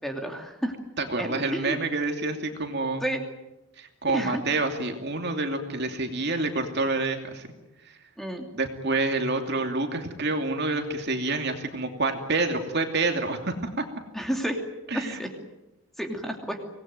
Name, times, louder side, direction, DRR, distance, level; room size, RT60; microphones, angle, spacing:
voice 1, 0.0-0.7 1.2-1.8 3.0-3.2 4.1-4.4 8.2-8.5 14.1-14.6 14.9-15.3 16.0-16.6, equal, ahead, 2 dB, 2.8 m, -30 dB
voice 2, 1.0-3.0 3.8-7.5 7.8-8.0 8.5-13.9 14.9-15.2, right 3 dB, 50° right, 4 dB, 2.7 m, -28 dB
25.5 x 20.0 x 9.3 m, 0.99 s
head